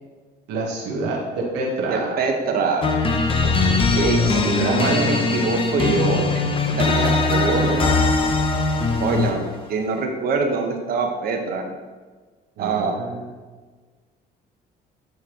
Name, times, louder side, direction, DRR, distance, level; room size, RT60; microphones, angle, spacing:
voice 1, 0.5-2.1 4.2-5.1 12.6-13.3, right 2 dB, 90° right, -3 dB, 1.1 m, -27 dB
voice 2, 1.9-3.0 3.9-7.9 9.0-11.6 12.6-13.0, right 4 dB, 60° right, 3 dB, 1.0 m, -24 dB
sound 1, 2.8-9.5, left 3 dB, 30° left, 0.7 m, -20 dB
8.0 x 4.7 x 2.9 m, 1.4 s
cardioid pair, 110°, 17 cm